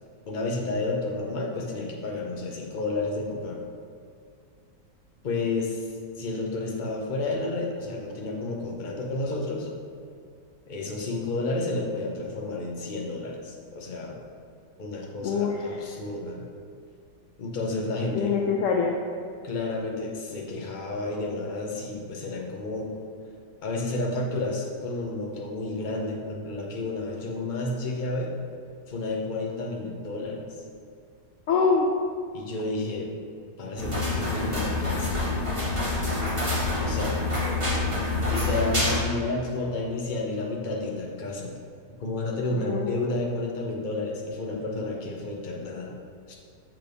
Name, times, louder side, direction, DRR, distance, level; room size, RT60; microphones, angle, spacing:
voice 1, 0.3-3.6 5.2-5.8 6.2-9.7 10.7-14.2 14.8-16.4 17.4-18.3 19.4-22.9 23.6-28.3 28.9-30.4 32.3-33.1 33.6-35.2 36.8-37.2 38.3-41.5 42.0-45.9 46.3-46.4, left 2 dB, 40° left, -1 dB, 0.8 m, -31 dB
voice 2, 15.2-15.8 18.1-19.0 31.5-31.9 42.6-43.4, left 5 dB, 75° left, 0 dB, 0.7 m, -25 dB
sound 1, 33.7-39.0, left 2 dB, 20° right, 1.5 m, -26 dB
6.3 x 5.9 x 3.5 m, 2.4 s
omnidirectional pair, 1.8 m